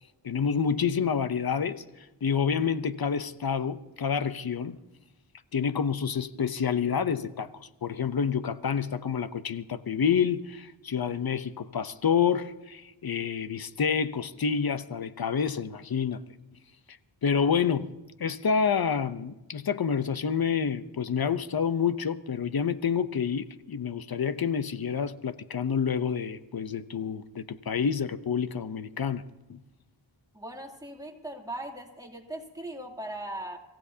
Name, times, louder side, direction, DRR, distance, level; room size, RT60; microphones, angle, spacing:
voice 1, 0.2-4.8 5.5-16.2 17.2-17.9 18.2-29.2 29.5-29.6, left 6 dB, 50° left, 0.8 m, -28 dB
voice 2, 30.3-33.6, right 1 dB, 10° right, 2.9 m, -39 dB
26.0 x 15.5 x 2.8 m
wide cardioid pair, 60°, 46 cm